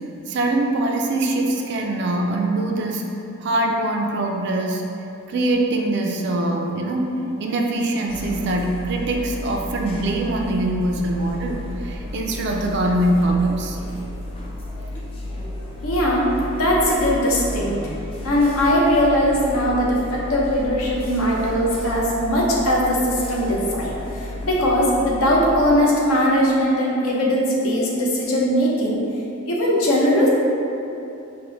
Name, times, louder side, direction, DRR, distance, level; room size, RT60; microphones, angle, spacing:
voice 1, 0.3-3.1 3.4-4.8 5.3-7.1 7.4-13.8, right 1 dB, 50° right, 1 dB, 0.3 m, -23 dB
sound 1, 8.1-25.7, left 1 dB, 25° left, 0.3 m, -33 dB
voice 2, 15.8-17.9 18.2-29.0 29.5-30.3, equal, 70° left, -4 dB, 0.7 m, -20 dB
4.3 x 2.1 x 4.0 m, 2.8 s
head